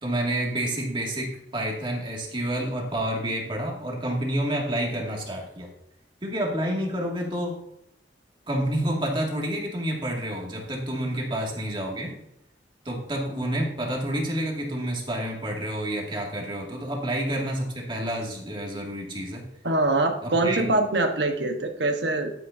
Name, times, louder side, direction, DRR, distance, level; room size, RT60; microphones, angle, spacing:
voice 1, 0.0-5.7 6.2-7.6 8.5-12.1 12.8-19.4 20.2-20.7, right 1 dB, 30° right, -1 dB, 2.3 m, -29 dB
voice 2, 19.6-22.3, right 2 dB, 75° right, 5 dB, 1.3 m, -24 dB
11.5 x 9.4 x 2.8 m, 0.82 s
head